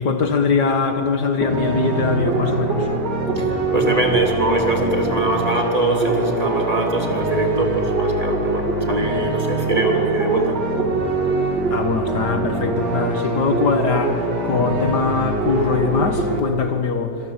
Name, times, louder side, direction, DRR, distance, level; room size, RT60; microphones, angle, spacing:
voice 1, 0.0-3.0 11.7-17.2, left 4 dB, 75° left, 2.2 m, -22 dB
sound 1, 1.4-16.4, right 3 dB, 75° right, 3.1 m, -23 dB
voice 2, 3.3-10.6, right 2 dB, 20° right, 3.4 m, -22 dB
26.5 x 25.5 x 8.4 m
omnidirectional pair, 1.8 m